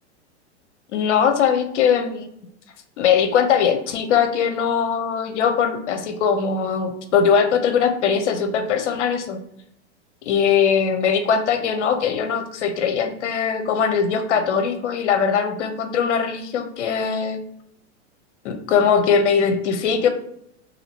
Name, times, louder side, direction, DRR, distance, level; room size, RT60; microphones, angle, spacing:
voice 1, 0.9-2.3 3.0-9.4 10.2-17.4 18.4-20.1, left 7 dB, 75° left, 7 dB, 0.7 m, -20 dB
2.9 x 2.8 x 2.8 m, 0.74 s
hypercardioid pair, 125°, 35 cm